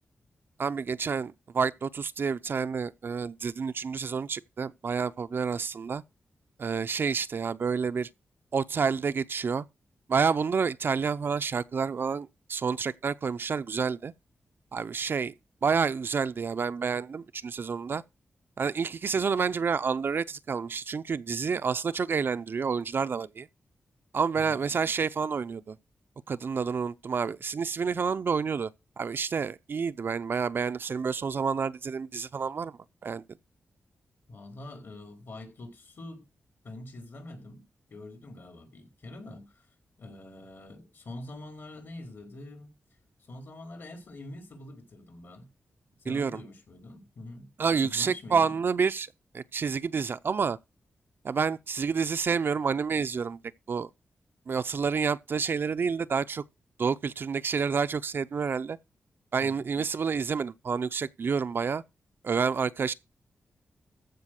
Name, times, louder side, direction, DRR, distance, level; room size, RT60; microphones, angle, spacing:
voice 1, 0.6-6.0 6.6-8.1 8.5-9.6 10.1-14.1 14.7-15.3 15.6-18.0 18.6-23.5 24.1-25.8 26.3-28.7 29.0-33.2 46.1-46.4 47.6-49.1 49.3-50.6 51.2-53.4 53.7-53.9 54.5-56.4 56.8-58.8 59.3-61.8 62.2-62.9, right 5 dB, 55° right, 0.6 m, -29 dB
voice 2, 24.3-24.7 34.3-36.2 36.6-37.6 37.9-39.7 40.0-42.7 43.3-45.5 46.0-47.5 47.8-48.6 59.4-59.7, left 2 dB, 60° left, 4.5 m, -45 dB
14.5 x 5.1 x 6.5 m
wide cardioid pair, 95°, 4 cm